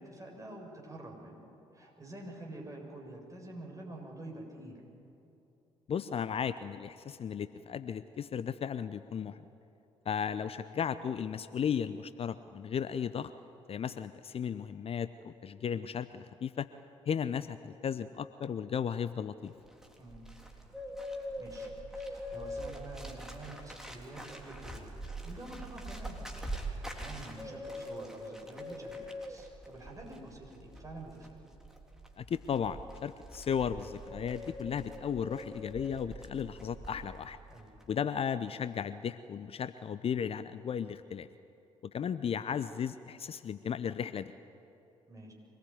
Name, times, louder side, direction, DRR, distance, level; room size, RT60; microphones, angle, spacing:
voice 1, 0.0-4.8 20.0-20.2 21.4-26.3 26.6-31.4 37.5-37.7 45.1-45.3, right 1 dB, 20° right, 0 dB, 7.4 m, -47 dB
voice 2, 5.9-9.4 10.1-13.3 13.7-16.7 17.1-19.5 32.2-37.4 37.9-41.3 41.9-44.3, left 7 dB, 40° left, 13 dB, 0.7 m, -35 dB
Bird, 19.5-37.3 37.5-37.9, equal, 5° right, 3.7 m, -43 dB
24.5 x 20.0 x 9.4 m, 2.9 s
figure-of-eight pair, 45°, 15 cm